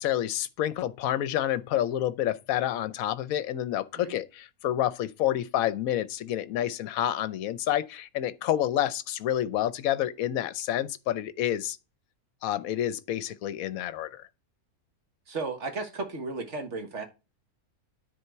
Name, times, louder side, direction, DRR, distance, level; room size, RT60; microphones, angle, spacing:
voice 1, 0.0-11.8 12.4-14.3, left 12 dB, 70° left, 1.0 m, -29 dB
voice 2, 15.3-17.0, right 3 dB, 50° right, 1.7 m, -34 dB
9.8 x 3.9 x 4.5 m
omnidirectional pair, 1.6 m